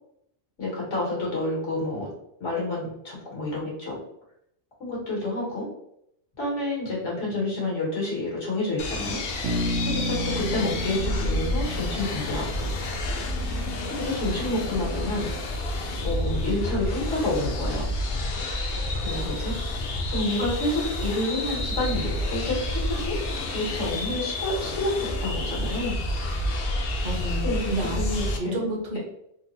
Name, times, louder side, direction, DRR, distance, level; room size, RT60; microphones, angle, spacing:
voice 1, 0.6-2.1 2.4-4.0 4.8-5.7 6.4-9.2 9.8-12.7 13.5-13.7 14.0-15.3 16.0-17.9 19.0-19.5 20.1-23.2 23.5-26.0 27.4-28.6, left 2 dB, 90° left, -4 dB, 1.7 m, -29 dB
sound 1, 8.8-28.4, left 1 dB, 65° left, 0.7 m, -29 dB
Bass guitar, 9.4-13.5, equal, 80° right, 0.9 m, -32 dB
voice 2, 27.0-28.0 28.4-29.0, right 1 dB, 50° right, 0 dB, 0.9 m, -30 dB
3.8 x 2.0 x 2.7 m, 0.74 s
omnidirectional pair, 1.2 m